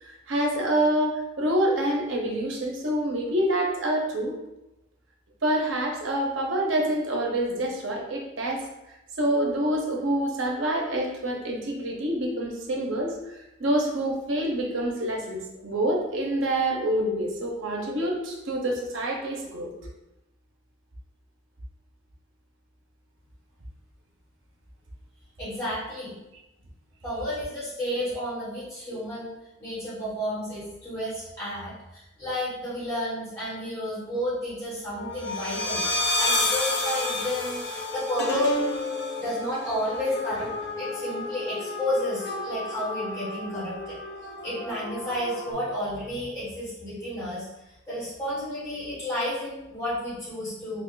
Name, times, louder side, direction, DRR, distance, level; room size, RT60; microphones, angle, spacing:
voice 1, 0.0-4.3 5.4-8.6 9.2-19.7 28.9-29.0, right 1 dB, 70° right, 0 dB, 0.7 m, -27 dB
voice 2, 25.4-26.1 27.0-29.3 29.6-35.8 36.2-38.6 39.2-40.5 40.8-43.9 44.4-47.5 47.9-50.8, equal, 15° left, -13 dB, 1.5 m, -31 dB
sound 1, 35.0-45.5, left 2 dB, 55° left, 0.6 m, -31 dB
3.0 x 2.4 x 3.7 m, 0.94 s
head